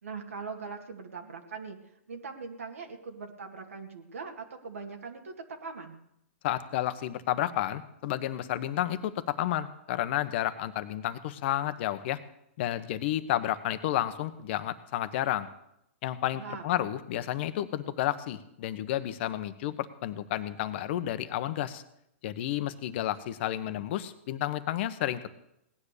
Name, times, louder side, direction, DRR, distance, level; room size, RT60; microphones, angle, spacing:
voice 1, 0.0-1.8 2.1-6.0 16.3-16.7, right 5 dB, 90° right, 2 dB, 2.3 m, -41 dB
voice 2, 6.4-12.2 12.6-15.5 16.0-21.8 22.2-25.3, left 12 dB, 55° left, 12 dB, 1.2 m, -31 dB
18.0 x 10.0 x 6.8 m, 0.79 s
hypercardioid pair, 130°, 7 cm